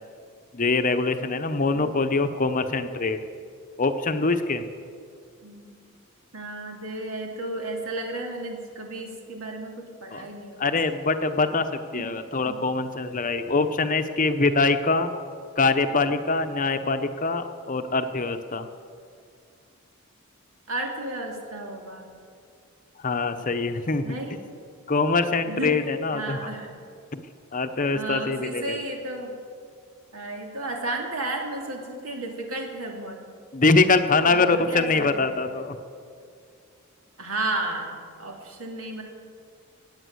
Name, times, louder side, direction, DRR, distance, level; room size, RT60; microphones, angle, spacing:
voice 1, 0.5-3.2 3.8-4.7 10.1-10.3 10.6-15.1 15.6-18.7 23.0-24.1 24.9-26.4 27.1-27.2 27.5-28.8 33.5-35.8, left 3 dB, 40° left, 8 dB, 0.8 m, -24 dB
voice 2, 5.4-5.7 6.3-10.8 11.9-12.1 12.5-12.6 20.7-22.1 24.0-24.4 25.5-25.7 26.1-26.8 27.9-29.4 30.1-33.3 34.2-35.4 37.2-39.0, right 2 dB, 75° right, 1 dB, 2.7 m, -33 dB
17.5 x 9.0 x 7.9 m, 2.3 s
head